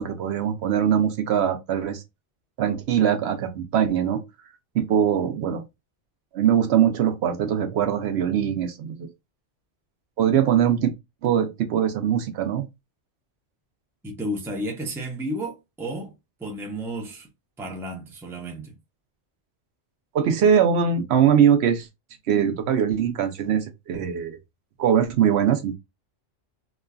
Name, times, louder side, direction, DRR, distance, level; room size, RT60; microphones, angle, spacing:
voice 1, 0.0-2.0 2.6-4.2 4.7-5.6 6.3-9.1 10.2-10.9 11.2-12.7 20.1-21.9 22.3-24.4 24.8-25.7, right 8 dB, 70° right, 0.8 m, -22 dB
voice 2, 14.0-16.1 16.4-17.3 17.6-18.7, right 1 dB, 5° right, 0.5 m, -32 dB
3.0 x 2.4 x 2.2 m
omnidirectional pair, 1.2 m